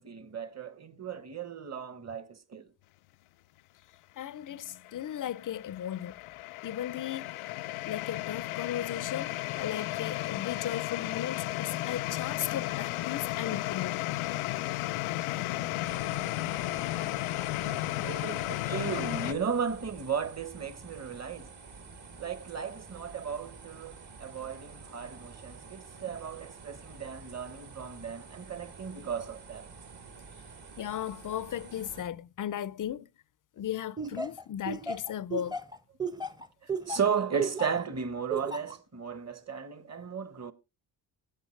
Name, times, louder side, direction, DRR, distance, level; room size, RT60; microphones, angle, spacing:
voice 1, 0.0-2.7 17.6-21.5 22.2-29.7 36.6-40.5, right 7 dB, 35° right, 1.2 m, -35 dB
voice 2, 4.2-6.2 6.6-7.3 7.9-14.0 30.8-33.1 33.6-35.5, left 10 dB, 40° left, 0.5 m, -36 dB
sound 1, 4.7-19.3, left 17 dB, 85° left, 0.6 m, -34 dB
sound 2, 15.8-32.0, right 4 dB, 55° right, 2.5 m, -49 dB
Laughter, 34.0-37.8 38.3-38.8, right 3 dB, 10° right, 0.8 m, -34 dB
15.5 x 8.3 x 3.2 m
cardioid pair, 75°, 47 cm